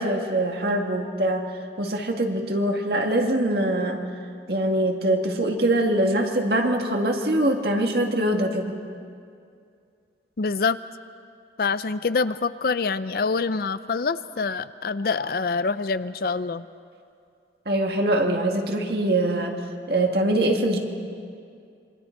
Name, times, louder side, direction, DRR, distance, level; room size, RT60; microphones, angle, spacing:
voice 1, 0.0-1.5 1.8-4.0 4.5-8.8 17.7-19.6 19.9-20.8, right 1 dB, 60° right, 2 dB, 1.9 m, -23 dB
voice 2, 10.4-10.8 11.6-16.7, left 4 dB, 55° left, 14 dB, 0.5 m, -25 dB
27.0 x 23.5 x 4.5 m, 2.4 s
head